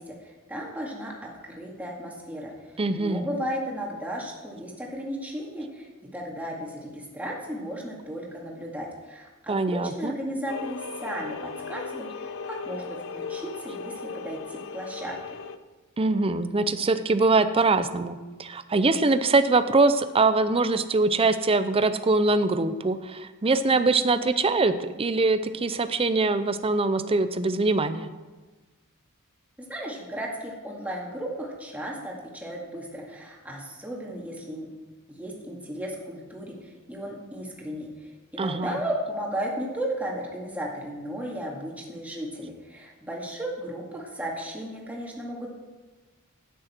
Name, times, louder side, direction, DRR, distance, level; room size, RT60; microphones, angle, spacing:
voice 1, 0.0-15.2 29.6-34.7 35.1-45.5, equal, 5° right, -2 dB, 2.1 m, -35 dB
voice 2, 2.8-3.3 9.5-10.1 16.0-28.1 38.4-38.8, right 3 dB, 25° right, 11 dB, 0.6 m, -23 dB
sound 1, 10.5-15.6, left 5 dB, 60° left, 0.6 m, -37 dB
12.5 x 9.4 x 4.5 m, 1.2 s
head